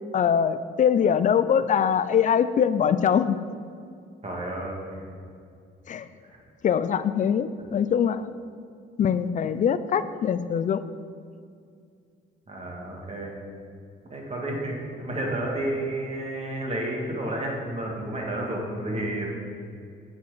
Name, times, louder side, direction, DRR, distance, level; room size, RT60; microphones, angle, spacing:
voice 1, 0.1-3.4 5.9-6.1 6.6-8.3 9.0-10.8, left 8 dB, 40° left, 13 dB, 0.4 m, -23 dB
voice 2, 4.2-5.0 12.5-13.4 14.1-19.3, right 1 dB, 35° right, -1 dB, 1.7 m, -31 dB
8.2 x 4.5 x 4.7 m, 2.3 s
cardioid pair, 90°, 20 cm